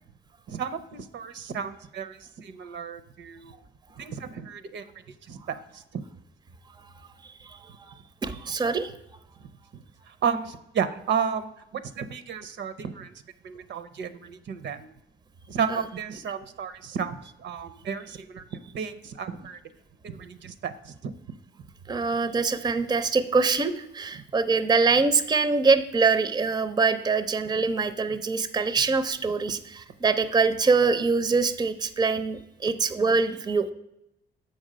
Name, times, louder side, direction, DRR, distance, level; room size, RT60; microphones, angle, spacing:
voice 1, 0.5-3.5 4.0-4.8 5.3-6.0 10.1-13.1 13.4-14.9 15.5-18.4 18.7-19.6 20.0-21.1, right 7 dB, 65° right, 11 dB, 0.6 m, -33 dB
voice 2, 7.2-7.6 7.9-8.0 8.2-8.9 15.7-15.8 21.9-33.7, right 4 dB, 20° right, 12 dB, 0.5 m, -24 dB
7.1 x 5.5 x 5.0 m, 0.85 s
cardioid pair, 90°, 20 cm